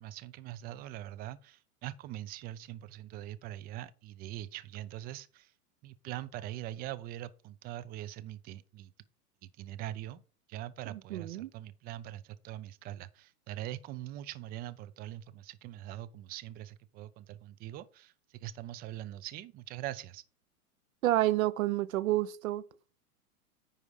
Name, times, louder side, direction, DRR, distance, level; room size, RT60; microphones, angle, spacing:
voice 1, 0.0-5.5 5.8-8.9 9.6-10.2 10.5-20.2, right 13 dB, 20° right, 0.5 m, -42 dB
voice 2, 11.1-11.5 21.0-22.6, right 15 dB, 65° right, 0.8 m, -29 dB
9.6 x 4.9 x 4.8 m
hypercardioid pair, 110°, 44 cm